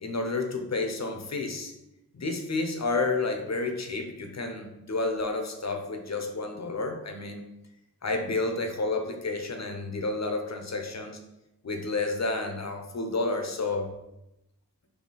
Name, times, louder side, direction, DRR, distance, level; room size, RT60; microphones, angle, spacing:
voice 1, 0.0-1.7 2.1-7.4 8.0-11.2 11.6-13.9, left 3 dB, 45° left, 4 dB, 0.7 m, -30 dB
4.1 x 2.7 x 3.9 m, 0.89 s
cardioid pair, 50°, 37 cm